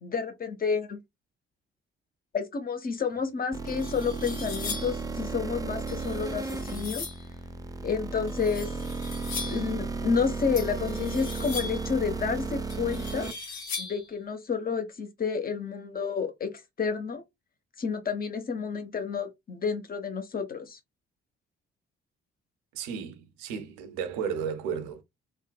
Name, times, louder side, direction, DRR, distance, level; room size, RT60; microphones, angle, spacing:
voice 1, 0.0-1.0 2.3-7.0 7.8-8.7 9.5-13.3 13.8-17.2 17.8-20.8, left 5 dB, 30° left, 0.8 m, -30 dB
sound 1, 3.2-3.3 3.7-5.1 5.9-7.3 8.3-9.7 10.6-11.9 12.7-14.1, left 4 dB, 85° left, 0.6 m, -39 dB
sound 2, 3.5-13.3, right 3 dB, 10° right, 0.4 m, -34 dB
voice 2, 22.7-25.0, right 7 dB, 70° right, 0.6 m, -33 dB
3.5 x 2.1 x 2.2 m
figure-of-eight pair, 45°, 30 cm